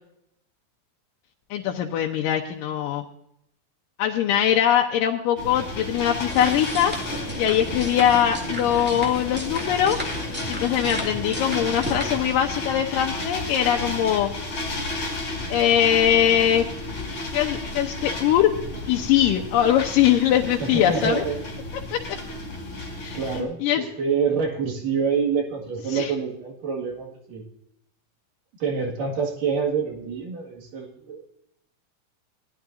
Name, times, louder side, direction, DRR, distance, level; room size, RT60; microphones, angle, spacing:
voice 1, 1.5-3.0 4.0-6.9 7.4-10.0 10.5-14.3 15.5-16.7 17.3-18.5 18.9-21.2 21.9-22.0 23.0-23.2 23.6-23.8 25.9-26.1, left 10 dB, 85° left, 0 dB, 2.5 m, -21 dB
sound 1, 5.4-23.4, left 2 dB, 40° left, 5.0 m, -32 dB
sound 2, 6.3-12.2, equal, 5° right, 1.5 m, -34 dB
voice 2, 20.4-21.4 23.1-27.4 28.6-31.3, right 5 dB, 75° right, -1 dB, 3.6 m, -27 dB
19.0 x 12.5 x 2.6 m, 0.77 s
omnidirectional pair, 3.9 m